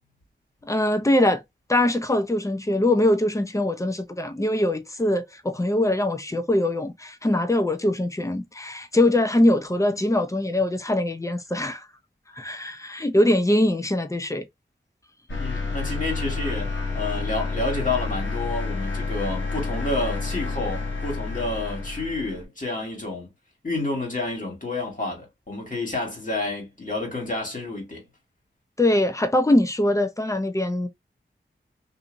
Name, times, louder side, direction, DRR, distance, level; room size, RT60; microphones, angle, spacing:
voice 1, 0.6-1.4 1.7-11.9 12.4-14.4 28.8-30.9, left 1 dB, 15° left, 0.6 m, -22 dB
sound 1, 15.3-22.4, left 3 dB, 75° left, 0.9 m, -29 dB
voice 2, 15.4-23.3 23.6-28.1, left 2 dB, 40° left, 1.8 m, -29 dB
2.7 x 2.7 x 2.5 m
wide cardioid pair, 45°, 20 cm